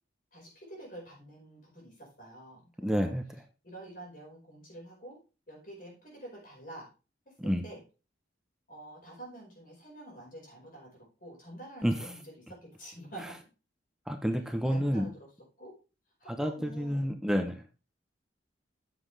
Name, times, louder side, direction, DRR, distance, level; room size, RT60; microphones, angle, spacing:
voice 1, 0.3-3.1 3.6-5.2 5.5-6.9 7.2-7.8 8.7-13.3 14.6-15.3 15.6-15.7 16.2-17.1, right 1 dB, 45° left, -1 dB, 5.0 m, -48 dB
voice 2, 2.8-3.4 7.4-7.6 11.8-11.9 14.1-15.1 16.3-17.6, equal, 5° right, 6 dB, 0.8 m, -29 dB
9.5 x 7.4 x 3.4 m, 0.33 s
head